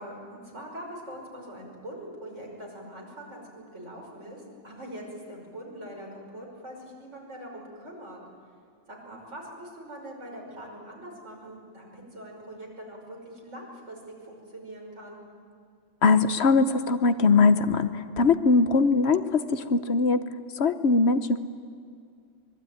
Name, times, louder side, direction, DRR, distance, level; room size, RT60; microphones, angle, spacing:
voice 1, 0.0-8.2 8.9-15.2, right 1 dB, 85° right, -1 dB, 6.1 m, -43 dB
voice 2, 16.0-20.3 20.5-21.4, left 4 dB, 65° left, 11 dB, 1.2 m, -21 dB
24.5 x 22.0 x 9.4 m, 2.2 s
omnidirectional pair, 1.2 m